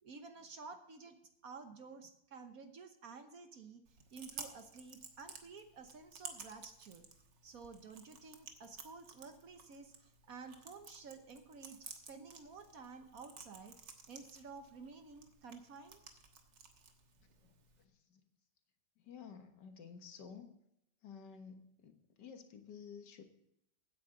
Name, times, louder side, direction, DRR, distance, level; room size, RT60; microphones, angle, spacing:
voice 1, 0.0-1.2 1.4-3.8 4.1-7.1 7.4-16.0, right 4 dB, 55° right, 7 dB, 1.3 m, -52 dB
Chewing mastication, 3.9-17.9, right 5 dB, 70° right, 2.0 m, -54 dB
voice 2, 17.8-18.2 19.0-20.5 21.0-23.2, left 6 dB, 65° left, 6 dB, 1.8 m, -52 dB
16.0 x 9.4 x 3.8 m, 0.79 s
omnidirectional pair, 2.0 m